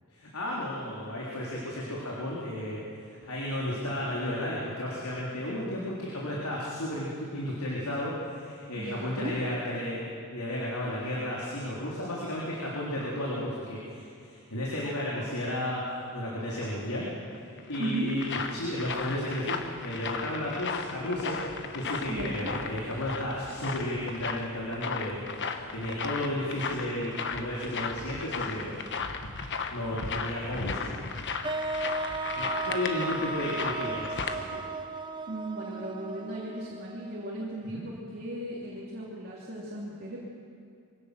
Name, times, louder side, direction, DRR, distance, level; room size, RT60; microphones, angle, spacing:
voice 1, 0.1-10.0 10.3-17.1 17.4-28.8 29.7-31.1 32.4-34.7 37.7-37.8, left 1 dB, 90° left, -5 dB, 3.4 m, -33 dB
voice 2, 8.8-9.3 17.8-18.1 22.1-22.5 35.3-40.2, right 1 dB, 45° right, -5 dB, 3.2 m, -36 dB
sound 1, 17.3-34.4, left 5 dB, 55° left, 1.2 m, -36 dB
sound 2, 31.4-37.5, right 3 dB, 20° right, 0.8 m, -35 dB
23.0 x 17.0 x 6.7 m, 2.6 s
head